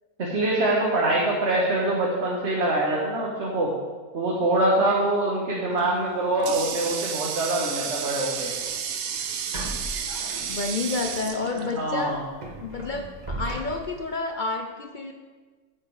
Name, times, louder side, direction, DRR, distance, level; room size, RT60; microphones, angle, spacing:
voice 1, 0.2-3.7 4.1-8.5 11.8-12.2, right 1 dB, 45° right, -4 dB, 1.7 m, -24 dB
voice 2, 5.7-6.0 10.5-12.2 12.6-15.1, left 3 dB, 55° left, 5 dB, 0.5 m, -30 dB
Water tap faucet, 5.8-12.3, right 7 dB, 70° right, 1.2 m, -32 dB
sound 1, 8.4-8.5 9.5-11.0 11.4-11.6 12.0-14.1, right 1 dB, 30° right, 1.5 m, -37 dB
9.9 x 8.4 x 4.8 m, 1.4 s
omnidirectional pair, 1.7 m